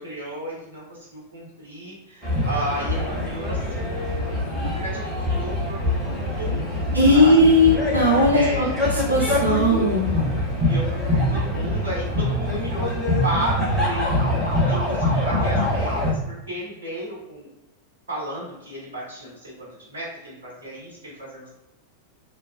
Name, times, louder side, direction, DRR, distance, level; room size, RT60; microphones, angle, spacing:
voice 1, 0.0-7.5 8.3-8.8 10.6-12.9 13.2-14.3 14.6-17.5 18.1-21.5, right 1 dB, 60° right, -6 dB, 1.3 m, -33 dB
sound 1, 2.2-16.1, left 1 dB, 20° right, 1.4 m, -24 dB
voice 2, 6.9-8.7 9.1-10.1, left 1 dB, 85° right, -3 dB, 0.6 m, -17 dB
3.0 x 2.4 x 2.5 m, 0.97 s
figure-of-eight pair, 90°, 0 cm